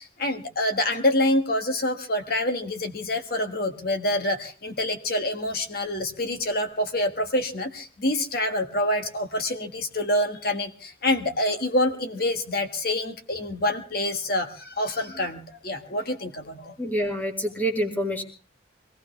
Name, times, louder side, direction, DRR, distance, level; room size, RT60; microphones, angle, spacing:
voice 1, 0.0-16.8, left 1 dB, 50° left, 6 dB, 1.6 m, -26 dB
voice 2, 16.8-18.2, equal, 10° left, 3 dB, 1.9 m, -27 dB
24.0 x 17.5 x 3.3 m, 0.37 s
head